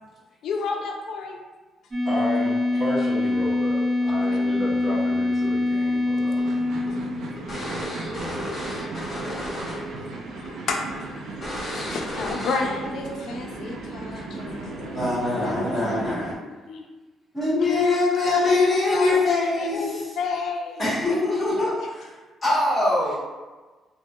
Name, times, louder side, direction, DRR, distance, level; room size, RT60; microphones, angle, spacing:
voice 1, 0.4-1.4 4.1-4.4 8.2-8.3 8.9-11.1 11.5-15.0 15.4-16.9 17.6-20.9, left 4 dB, 70° left, 2 dB, 0.3 m, -31 dB
sound 1, 1.9-7.5, left 2 dB, 30° right, 0.9 m, -24 dB
voice 2, 2.0-6.5 14.1-14.2, left 1 dB, 45° right, -10 dB, 1.4 m, -32 dB
sound 2, 6.4-10.0 10.3-10.5 10.9-11.0 11.4-12.9, equal, 30° left, 1.4 m, -33 dB
sound 3, 6.4-16.3, right 3 dB, 75° right, 0.4 m, -36 dB
voice 3, 14.9-16.3 17.3-20.1 20.8-22.1 22.4-23.2, left 2 dB, 15° left, -11 dB, 1.3 m, -23 dB
2.8 x 2.7 x 2.3 m, 1.3 s
cardioid pair, 120°, 0 cm